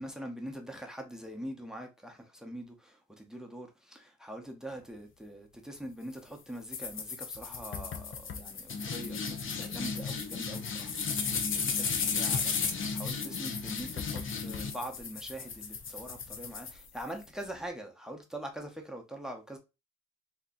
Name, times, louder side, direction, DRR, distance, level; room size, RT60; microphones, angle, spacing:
voice 1, 0.0-10.9 11.2-19.6, right 1 dB, ahead, 0.8 m, -43 dB
sound 1, 6.7-17.2, left 5 dB, 40° left, 0.7 m, -34 dB
3.8 x 2.9 x 2.6 m
cardioid pair, 90°, 30 cm